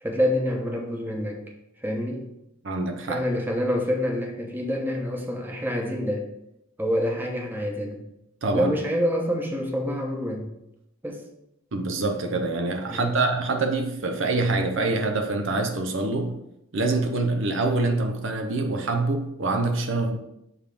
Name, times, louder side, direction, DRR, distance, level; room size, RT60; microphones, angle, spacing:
voice 1, 0.0-1.4 1.8-2.3 3.1-6.3 6.8-8.0 8.5-10.5 11.0-11.2 12.9-13.3, equal, 10° right, 0.9 m, -27 dB
voice 2, 2.6-3.2 8.4-8.7 11.7-16.4 16.7-20.2, right 3 dB, 65° right, 0.7 m, -25 dB
7.1 x 3.5 x 5.1 m
head